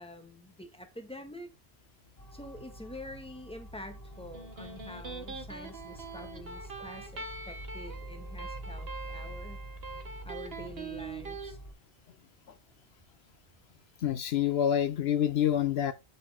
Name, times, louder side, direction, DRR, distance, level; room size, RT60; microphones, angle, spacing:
voice 1, 0.0-1.5 2.3-9.6 9.9-11.6, left 1 dB, 5° left, 1.6 m, -47 dB
sound 1, 2.2-11.7, right 1 dB, 40° left, 1.8 m, -46 dB
Electric guitar, 4.1-11.5, right 4 dB, 65° right, 1.7 m, -43 dB
voice 2, 14.0-15.9, left 10 dB, 75° left, 0.9 m, -27 dB
9.6 x 7.8 x 2.2 m
omnidirectional pair, 1.1 m